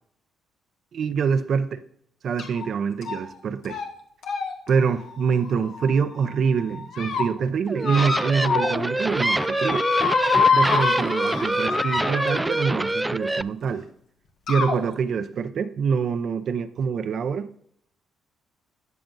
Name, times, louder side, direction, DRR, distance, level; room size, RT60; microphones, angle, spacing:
voice 1, 0.9-1.8 2.2-3.8 4.7-9.8 10.5-13.9 14.5-17.5, right 6 dB, 60° right, 0.6 m, -25 dB
sound 1, 2.4-2.7 3.0-3.4 3.6-3.9 4.2-6.2 6.7-7.2 7.8-8.8 9.1-12.7 13.7-13.8 14.5-14.8, left 5 dB, 75° left, 1.7 m, -26 dB
sound 2, 7.7-13.4, right 1 dB, 10° right, 0.3 m, -25 dB
17.5 x 6.0 x 2.7 m
cardioid pair, 90°, 0 cm